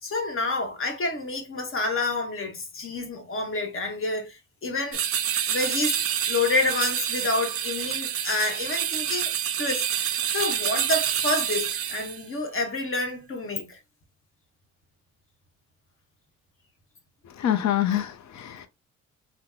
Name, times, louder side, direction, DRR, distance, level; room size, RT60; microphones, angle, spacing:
voice 1, 0.0-5.0 5.5-6.0 6.3-9.3 9.6-9.9 10.3-13.8, left 2 dB, 45° left, 1.2 m, -28 dB
sound 1, 4.9-12.2, right 9 dB, 50° right, 0.5 m, -28 dB
voice 2, 17.4-18.7, left 11 dB, 65° left, 0.6 m, -26 dB
3.0 x 2.1 x 3.6 m
cardioid pair, 90°, 30 cm